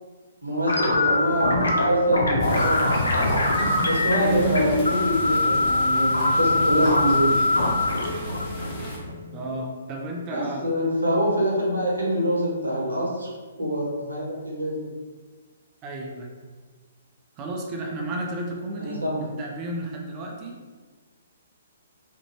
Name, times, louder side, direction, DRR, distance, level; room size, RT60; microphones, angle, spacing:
voice 1, 0.4-3.2 3.8-7.3 10.3-13.3 13.6-14.9 18.8-19.3, equal, 85° right, -4 dB, 0.9 m, -25 dB
sound 1, 0.7-9.6, left 1 dB, 75° left, 0.5 m, -23 dB
sound 2, 2.4-9.0, left 1 dB, 20° left, 0.8 m, -34 dB
voice 2, 3.1-3.9 4.1-4.7 9.3-10.7 15.8-16.3 17.4-20.5, right 1 dB, 30° right, 1 dB, 0.4 m, -33 dB
2.5 x 2.1 x 3.0 m, 1.4 s
figure-of-eight pair, 125°, 0 cm